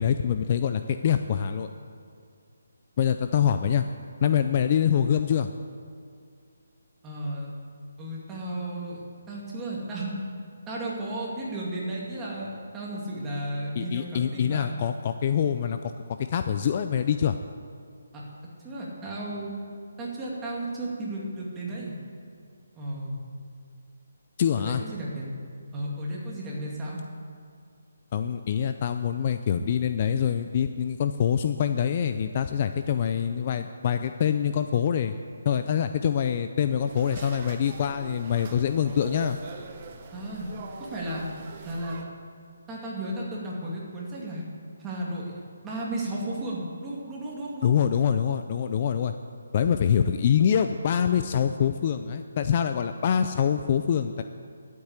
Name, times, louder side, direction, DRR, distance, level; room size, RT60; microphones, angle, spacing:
voice 1, 0.0-1.7 3.0-3.8 4.2-5.5 13.8-15.9 16.2-17.4 24.4-24.8 28.1-35.1 35.4-39.4 47.6-49.1 49.5-54.2, left 8 dB, 35° left, 9 dB, 0.4 m, -25 dB
voice 2, 7.0-7.5 8.0-9.0 9.3-10.3 10.7-14.8 18.1-18.2 18.6-19.5 20.0-22.0 22.7-23.2 24.5-25.2 25.7-27.0 40.1-40.5 40.8-41.2 41.6-42.0 42.7-44.4 44.8-47.7, right 1 dB, 10° right, -5 dB, 2.4 m, -34 dB
sound 1, 36.9-42.0, right 4 dB, 30° right, 1.1 m, -42 dB
11.5 x 8.3 x 8.1 m, 2.3 s
hypercardioid pair, 165°, 0 cm